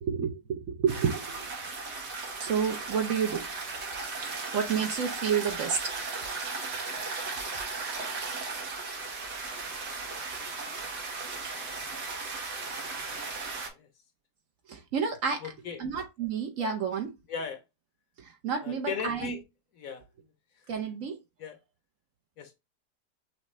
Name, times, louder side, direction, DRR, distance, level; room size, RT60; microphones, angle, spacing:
voice 1, 0.0-1.5 2.4-3.4 4.5-5.8 14.7-15.4 15.8-17.1 18.2-19.3 20.7-21.2, right 6 dB, 60° right, 1.0 m, -30 dB
sound 1, 0.9-13.7, right 4 dB, 90° right, 2.0 m, -36 dB
voice 2, 13.4-13.9 15.4-15.8 17.3-17.6 18.6-19.4 19.7-20.0 21.4-21.6 22.4-22.5, left 5 dB, 60° left, 1.1 m, -37 dB
6.4 x 2.6 x 3.1 m
omnidirectional pair, 1.8 m